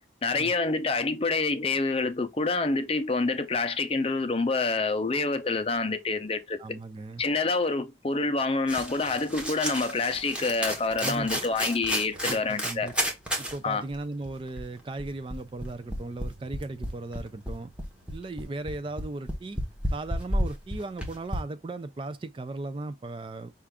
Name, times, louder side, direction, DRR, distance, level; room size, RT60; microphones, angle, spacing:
voice 1, 0.2-6.6 7.2-12.9 13.6-13.8, left 3 dB, 30° left, 0.5 m, -27 dB
voice 2, 6.6-7.2 11.0-11.5 12.1-12.9 13.4-17.7 18.1-19.6 19.9-23.5, right 2 dB, 30° right, 0.3 m, -37 dB
sound 1, 8.7-13.6 13.9-14.0 14.2-21.4, equal, 5° right, 1.0 m, -32 dB
5.6 x 2.4 x 3.5 m
head